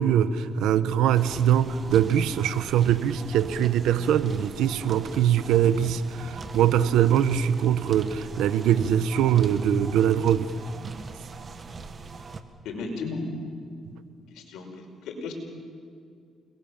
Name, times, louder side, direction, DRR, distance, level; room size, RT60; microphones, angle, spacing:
voice 1, 0.0-10.5, right 9 dB, 90° right, 13 dB, 1.1 m, -22 dB
bm dishwasher, 1.1-12.4, right 4 dB, 40° right, 1.8 m, -40 dB
voice 2, 12.6-13.3 13.6-13.7 14.3-15.3, left 4 dB, 85° left, 3 dB, 5.4 m, -35 dB
29.5 x 21.5 x 7.3 m, 2.3 s
cardioid pair, 90°, 0 cm